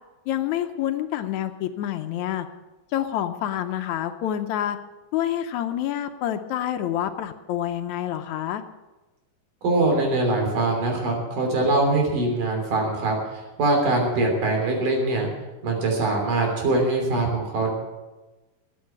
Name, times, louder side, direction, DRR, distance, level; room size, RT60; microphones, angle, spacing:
voice 1, 0.3-2.5 2.9-4.8 5.1-8.6, left 11 dB, 75° left, 8 dB, 2.0 m, -27 dB
voice 2, 9.6-13.1 13.6-15.3 15.6-17.7, right 2 dB, 85° right, 1 dB, 4.9 m, -22 dB
13.5 x 9.5 x 8.4 m, 1.2 s
omnidirectional pair, 3.6 m